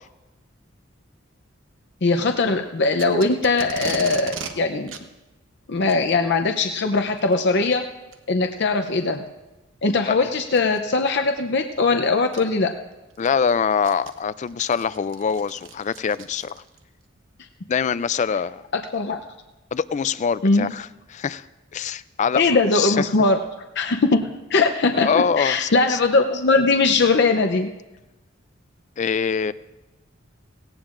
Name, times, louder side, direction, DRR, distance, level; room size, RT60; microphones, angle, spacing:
voice 1, 2.0-4.9 5.7-7.8 8.3-9.2 9.8-12.7 18.7-19.2 20.4-20.7 22.3-23.4 23.8-27.7, left 3 dB, 60° left, 5 dB, 0.7 m, -20 dB
Packing tape duct tape, 2.9-4.5 4.9-5.0 5.8-6.0 7.2-7.4 8.1-8.2 8.8-8.9 10.5-10.8 11.9-12.0 12.3-12.4 12.9-16.8, right 5 dB, 70° right, 1.0 m, -37 dB
voice 2, 13.2-16.5 17.7-18.6 19.7-21.5 21.7-22.4 22.7-23.0 25.0-26.0 29.0-29.5, left 6 dB, 35° left, 17 dB, 0.3 m, -24 dB
17.5 x 17.0 x 2.5 m, 1.0 s
head